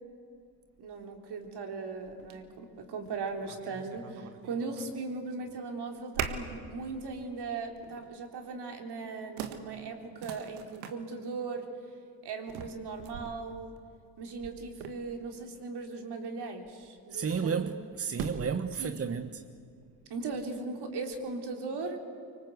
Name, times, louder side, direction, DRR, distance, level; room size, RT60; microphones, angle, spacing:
voice 1, 0.8-11.7 12.2-13.7 14.2-17.6 18.8-19.1 20.1-22.1, right 4 dB, 60° right, 3 dB, 3.9 m, -38 dB
sound 1, 1.4-1.5 2.2-2.4 2.8-5.0 5.3-5.7 6.1-6.6 7.1-7.2 7.8-8.1 8.9-9.0 9.4-11.0 12.5-15.4 17.5-18.6, right 7 dB, 85° right, 1.6 m, -42 dB
voice 2, 17.1-19.4, right 6 dB, 30° right, 9 dB, 1.2 m, -32 dB
25.0 x 24.5 x 8.1 m, 2.5 s
hypercardioid pair, 50°, 44 cm